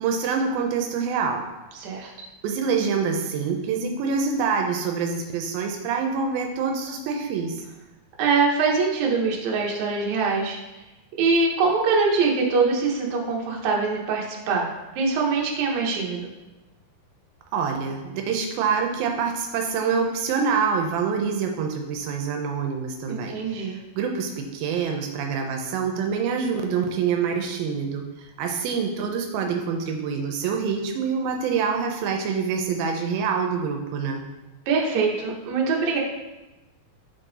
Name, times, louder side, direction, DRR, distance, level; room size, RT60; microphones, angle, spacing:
voice 1, 0.0-1.4 2.4-7.6 17.5-34.2, right 6 dB, 85° right, 3 dB, 2.5 m, -26 dB
voice 2, 1.8-2.1 8.2-10.6 11.2-14.7 15.0-16.3 23.1-23.8 34.7-36.0, right 4 dB, 65° right, -2 dB, 2.1 m, -23 dB
8.6 x 3.8 x 4.0 m, 1.1 s
omnidirectional pair, 4.2 m